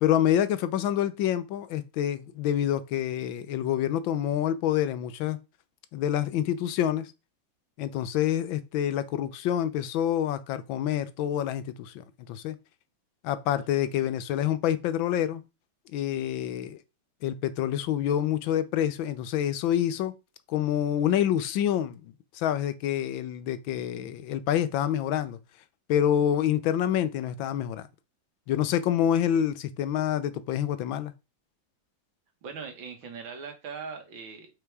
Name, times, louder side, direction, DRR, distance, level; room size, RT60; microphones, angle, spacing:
voice 1, 0.0-5.4 5.9-7.1 7.8-12.5 13.2-15.4 15.9-16.8 17.2-20.1 20.5-25.4 25.9-27.8 28.5-31.1, left 10 dB, 85° left, 1.5 m, -27 dB
voice 2, 32.4-34.5, right 5 dB, 85° right, 2.2 m, -40 dB
5.5 x 4.5 x 4.7 m
omnidirectional pair, 2.1 m